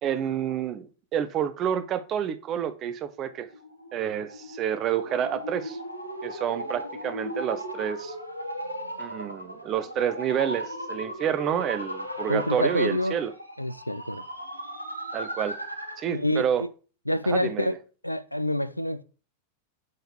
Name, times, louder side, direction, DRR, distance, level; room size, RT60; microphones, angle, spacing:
voice 1, 0.0-3.5 3.9-5.8 6.2-8.1 9.0-13.3 15.1-15.6 16.0-16.6 17.2-17.8, right 9 dB, 30° right, 0.6 m, -29 dB
sound 1, 3.4-16.1, equal, 90° right, 0.9 m, -37 dB
voice 2, 12.3-13.2 13.6-14.2 16.1-16.7 17.1-17.7 18.0-19.0, left 1 dB, 90° left, 0.3 m, -27 dB
6.4 x 5.6 x 2.8 m
figure-of-eight pair, 90°, 0 cm